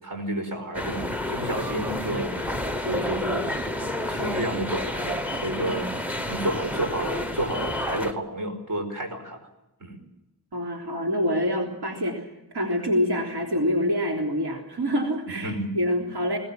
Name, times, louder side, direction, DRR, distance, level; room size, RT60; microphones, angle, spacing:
voice 1, 0.0-3.5 4.1-9.4 9.8-10.0 15.4-15.7, right 1 dB, 55° right, 3 dB, 5.0 m, -31 dB
sound 1, 0.7-8.1, left 1 dB, 5° right, 0.9 m, -30 dB
voice 2, 10.5-16.4, equal, 85° right, 0 dB, 3.6 m, -26 dB
22.5 x 18.5 x 7.7 m, 0.96 s
wide cardioid pair, 175°, 38 cm